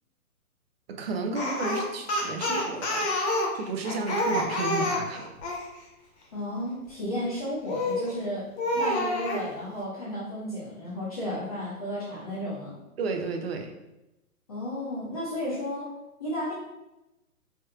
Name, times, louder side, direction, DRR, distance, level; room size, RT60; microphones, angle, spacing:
voice 1, 0.9-3.1 3.5-5.3 13.0-13.7, right 3 dB, 45° right, 4 dB, 0.5 m, -32 dB
Speech, 1.3-5.7 7.7-8.1 8.6-9.4, left 1 dB, 50° left, 0.8 m, -28 dB
voice 2, 6.3-12.8 14.5-15.9 16.2-16.5, left 1 dB, 25° left, -8 dB, 0.5 m, -33 dB
3.3 x 2.9 x 2.3 m, 0.95 s
hypercardioid pair, 135°, 44 cm